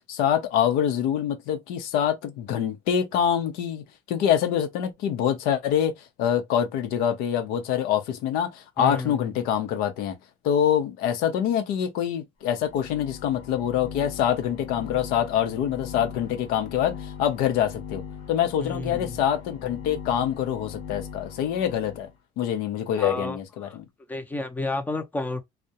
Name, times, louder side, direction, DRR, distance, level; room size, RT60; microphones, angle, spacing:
voice 1, 0.1-5.9 6.2-10.2 10.4-18.0 18.3-22.1 22.4-23.8, left 9 dB, 90° left, 0.6 m, -25 dB
voice 2, 8.8-9.4 18.6-19.2 23.0-23.4 23.6-23.8 24.1-25.4, left 2 dB, 10° left, 0.5 m, -31 dB
sound 1, 12.5-22.1, left 7 dB, 65° left, 1.0 m, -40 dB
2.3 x 2.1 x 2.7 m
cardioid pair, 135°, 15 cm